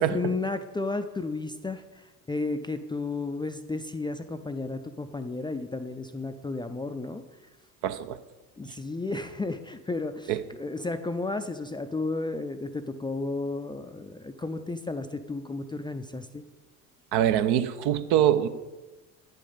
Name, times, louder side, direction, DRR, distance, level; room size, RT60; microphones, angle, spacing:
voice 1, 0.1-7.2 8.6-16.4, left 3 dB, 10° left, 0.4 m, -33 dB
voice 2, 7.8-8.2 10.3-10.4 17.1-18.5, right 11 dB, 60° right, 0.7 m, -24 dB
9.0 x 5.3 x 5.6 m
hypercardioid pair, 60°, 45 cm